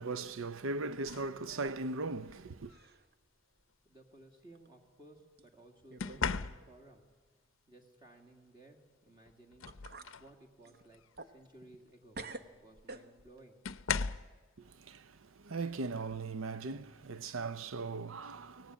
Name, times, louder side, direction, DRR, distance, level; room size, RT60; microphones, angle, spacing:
voice 1, 0.0-2.7 14.6-18.7, right 3 dB, 70° right, 0.6 m, -39 dB
sound 1, 1.1-1.4 2.7-2.9 6.0-7.0 8.7-8.8 9.3-10.4 10.8-11.1 12.5-12.6 13.6-14.4 16.1-16.3 16.8-17.1, left 5 dB, 65° left, 0.6 m, -38 dB
sound 2, 1.5-2.4 2.7-3.1 3.6-3.7 4.5-4.7 5.4-5.5 5.9-6.3 6.6-6.7 9.2-9.3 9.7-10.2 10.6-11.9 12.1-13.4, right 2 dB, 45° right, 1.0 m, -49 dB
voice 2, 3.8-7.1 7.7-9.7 10.2-12.2 12.6-13.6, right 2 dB, 20° right, 2.2 m, -58 dB
23.5 x 18.0 x 8.9 m
head